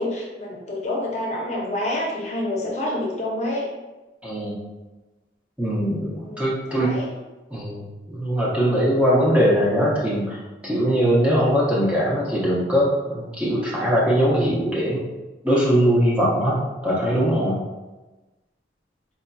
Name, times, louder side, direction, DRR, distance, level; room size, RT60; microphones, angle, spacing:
voice 1, 0.0-3.7 6.0-7.1, left 1 dB, 40° left, -3 dB, 0.7 m, -28 dB
voice 2, 4.2-4.6 5.6-7.0 7.5-15.0 15.4-17.6, equal, 5° right, -6 dB, 0.6 m, -21 dB
4.2 x 2.6 x 2.2 m, 1.1 s
head